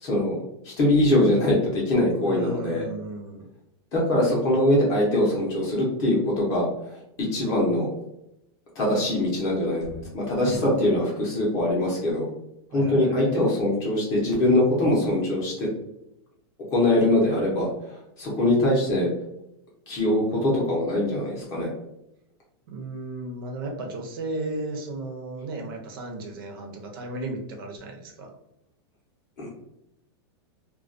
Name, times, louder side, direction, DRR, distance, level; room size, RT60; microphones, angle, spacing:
voice 1, 0.0-2.9 3.9-6.7 7.3-7.9 8.8-12.3 12.7-15.7 16.7-17.7 18.2-19.1 19.9-21.7 29.4-29.5, left 1 dB, 25° left, -3 dB, 0.6 m, -22 dB
voice 2, 2.2-3.5 10.4-11.0 12.7-13.3 22.7-28.3, right 2 dB, 55° right, 3 dB, 0.6 m, -35 dB
2.2 x 2.2 x 2.5 m, 0.82 s
supercardioid pair, 175°, 14 cm